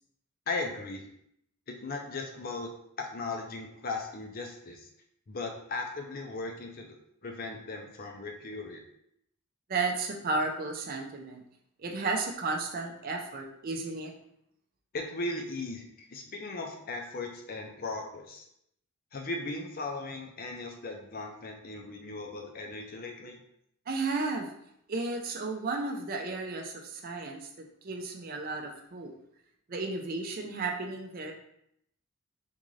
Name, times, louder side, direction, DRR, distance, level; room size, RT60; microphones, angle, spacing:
voice 1, 0.5-1.0 1.7-2.7 3.0-4.9 5.3-7.0 7.2-8.8 14.9-18.4 19.1-23.4, left 3 dB, 40° left, 2 dB, 0.5 m, -37 dB
voice 2, 9.7-11.4 11.8-14.1 23.9-24.5 24.9-29.1 29.7-31.3, right 3 dB, 40° right, 2 dB, 0.5 m, -33 dB
3.6 x 2.5 x 3.1 m, 0.74 s
head